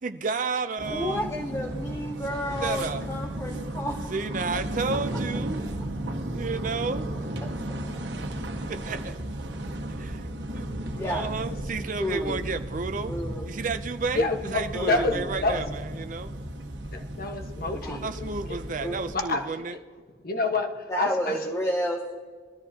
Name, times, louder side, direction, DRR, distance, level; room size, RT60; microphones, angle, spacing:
voice 1, 0.0-1.3 2.6-3.1 4.1-5.6 6.3-7.1 8.7-9.2 10.0-10.7 11.0-13.1 13.5-16.3 18.0-19.8, right 4 dB, 50° right, 9 dB, 0.5 m, -32 dB
sound 1, 0.8-19.1, right 1 dB, 85° right, 1.3 m, -34 dB
voice 2, 0.9-4.6 4.9-5.0 7.4-7.5 7.9-8.0 10.9-11.3 12.0-12.4 13.1-13.5 14.7-15.3 17.8-18.0 18.8-18.9 20.9-22.2, equal, 15° left, 0 dB, 0.9 m, -31 dB
voice 3, 14.1-15.6 16.9-19.8 20.2-21.4, left 3 dB, 55° left, 5 dB, 1.3 m, -29 dB
21.5 x 13.0 x 2.8 m, 1.5 s
head